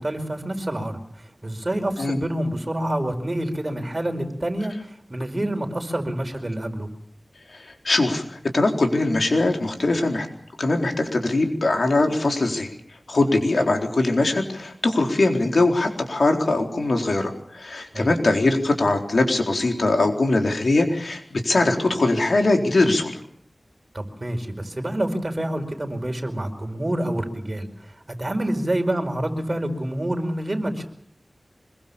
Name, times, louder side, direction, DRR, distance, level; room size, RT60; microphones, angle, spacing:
voice 1, 0.0-6.9 13.3-13.4 17.9-18.1 23.9-30.8, right 1 dB, 35° right, 5 dB, 4.8 m, -27 dB
voice 2, 7.5-8.2 8.5-10.3 10.6-12.7 13.1-23.1, left 2 dB, 80° left, 3 dB, 4.1 m, -21 dB
25.5 x 22.5 x 7.1 m, 0.64 s
wide cardioid pair, 60°, 0 cm